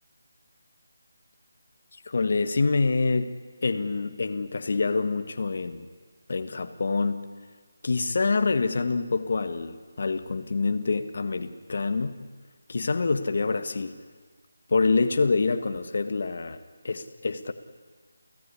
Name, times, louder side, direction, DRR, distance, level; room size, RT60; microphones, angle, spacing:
voice 1, 2.0-3.3 3.6-5.8 6.3-7.2 7.8-12.2 12.7-13.9 14.7-16.6 16.8-17.5, left 4 dB, 40° left, 9 dB, 1.4 m, -26 dB
29.5 x 16.0 x 9.8 m, 1.5 s
figure-of-eight pair, 175°, 0 cm